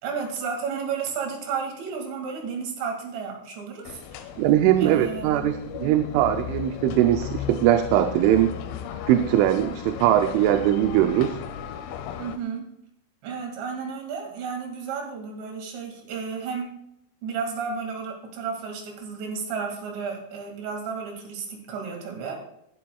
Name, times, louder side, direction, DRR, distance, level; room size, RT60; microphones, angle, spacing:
voice 1, 0.0-4.3 4.8-6.0 12.2-12.6 13.2-16.7 17.2-22.4, right 5 dB, 65° right, 1 dB, 4.2 m, -32 dB
sound 1, 3.9-12.4, left 9 dB, 85° left, 3.3 m, -36 dB
voice 2, 4.4-8.5 9.1-11.4, right 12 dB, 80° right, 7 dB, 3.0 m, -21 dB
20.0 x 12.0 x 2.3 m, 0.77 s
omnidirectional pair, 5.7 m